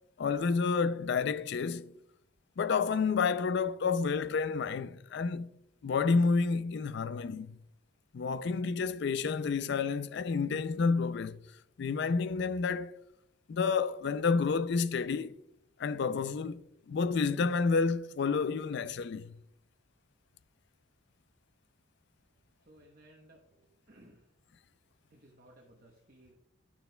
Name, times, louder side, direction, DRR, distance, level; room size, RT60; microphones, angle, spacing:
voice 1, 0.2-1.9 2.6-5.5 5.8-7.6 8.1-11.4 11.8-12.9 13.5-15.3 15.8-19.4, left 5 dB, 55° left, 0.3 m, -30 dB
voice 2, 22.6-24.3 25.1-26.3, right 1 dB, 45° right, 0.9 m, -59 dB
10.0 x 6.6 x 2.2 m
head